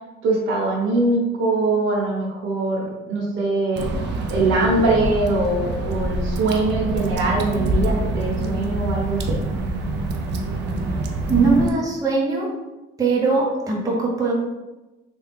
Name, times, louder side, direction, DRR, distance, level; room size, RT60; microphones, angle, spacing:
voice 1, 0.2-3.9 4.3-9.4, right 2 dB, 80° right, -2 dB, 1.1 m, -22 dB
Water / Drip, 3.8-11.7, right 2 dB, 60° right, 0.5 m, -26 dB
voice 2, 11.3-12.5 13.0-14.3, right 3 dB, 15° right, -3 dB, 0.7 m, -20 dB
3.4 x 2.3 x 3.5 m, 1.1 s
cardioid pair, 135°, 21 cm